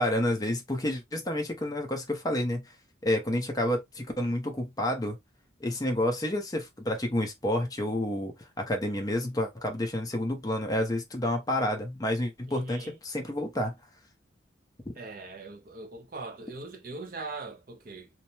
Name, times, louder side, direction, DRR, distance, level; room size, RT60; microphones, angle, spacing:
voice 1, 0.0-2.6 3.0-5.2 5.6-13.7, left 1 dB, 20° left, 0.7 m, -29 dB
voice 2, 12.5-13.0 15.0-18.1, right 3 dB, 50° right, 0.7 m, -41 dB
3.0 x 2.1 x 2.7 m
head